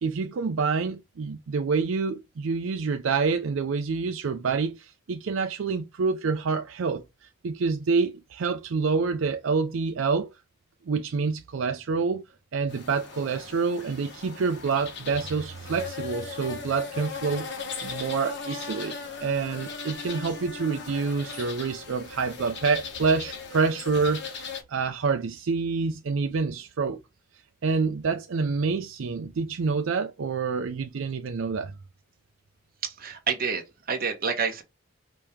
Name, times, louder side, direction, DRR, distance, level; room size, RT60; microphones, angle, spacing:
voice 1, 0.0-10.3 10.9-12.2 12.5-17.5 17.8-27.0 27.6-31.7, right 4 dB, 70° right, 0.4 m, -27 dB
sound 1, 12.7-24.6, left 5 dB, 55° left, 1.1 m, -38 dB
voice 2, 32.8-34.6, right 5 dB, 45° right, 1.0 m, -28 dB
5.2 x 2.8 x 3.4 m
head